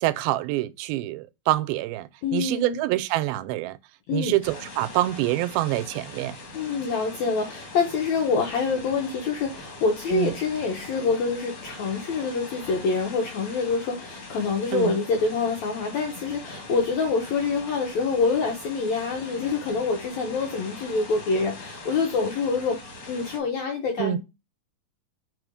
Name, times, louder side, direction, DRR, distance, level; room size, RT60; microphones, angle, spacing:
voice 1, 0.0-3.8 4.1-6.4 10.1-10.4 14.7-15.0 24.0-24.2, right 16 dB, 90° right, 2.4 m, -26 dB
voice 2, 2.2-2.8 4.1-4.3 6.5-24.2, left 4 dB, 75° left, 1.7 m, -26 dB
sound 1, 4.4-23.4, left 2 dB, 45° left, 1.6 m, -42 dB
5.0 x 3.8 x 4.9 m
omnidirectional pair, 4.2 m